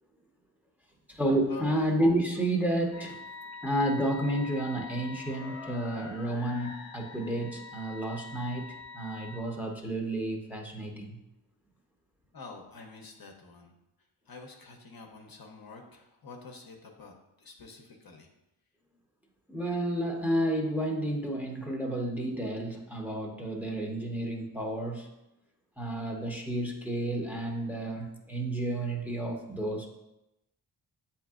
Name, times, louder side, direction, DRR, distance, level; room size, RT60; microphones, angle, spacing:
voice 1, 1.1-3.2 3.6-8.6 8.9-11.2 19.5-25.1 25.8-29.9, right 1 dB, 5° right, 0 dB, 0.9 m, -31 dB
sound 1, 2.9-9.4, left 4 dB, 75° left, 0.7 m, -45 dB
voice 2, 12.3-13.7 14.3-18.3, left 4 dB, 50° left, 2 dB, 0.8 m, -47 dB
7.7 x 2.8 x 2.4 m, 0.90 s
cardioid pair, 50°, 47 cm